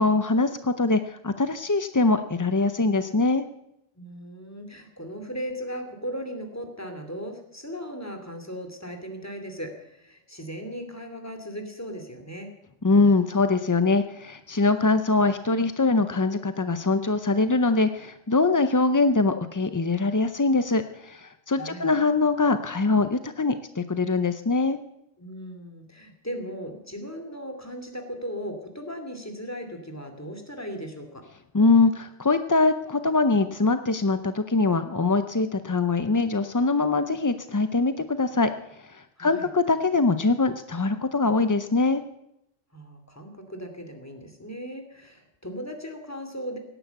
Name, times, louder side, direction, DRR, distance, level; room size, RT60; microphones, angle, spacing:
voice 1, 0.0-3.4 12.8-24.8 31.5-38.5 38.8-42.0, left 3 dB, 30° left, 10 dB, 0.3 m, -23 dB
voice 2, 3.9-12.5 21.6-21.9 25.2-31.2 39.2-39.5 42.7-46.6, equal, 15° left, 5 dB, 2.5 m, -37 dB
17.5 x 10.0 x 8.1 m, 0.82 s
omnidirectional pair, 1.2 m